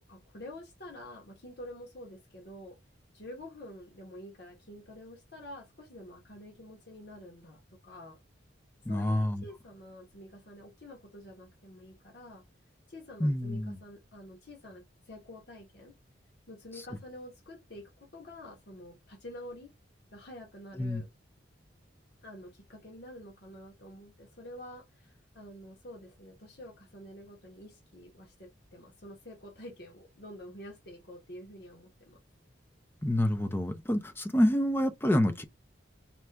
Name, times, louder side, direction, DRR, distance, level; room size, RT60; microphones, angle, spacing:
voice 1, 0.0-2.8 3.1-8.2 8.9-12.4 12.9-15.9 16.5-19.7 20.1-21.1 22.2-32.2, left 1 dB, 55° left, 1.1 m, -48 dB
voice 2, 8.9-9.4 13.2-13.8 20.8-21.0 33.0-35.4, left 1 dB, 10° left, 0.5 m, -27 dB
4.3 x 2.4 x 3.3 m
head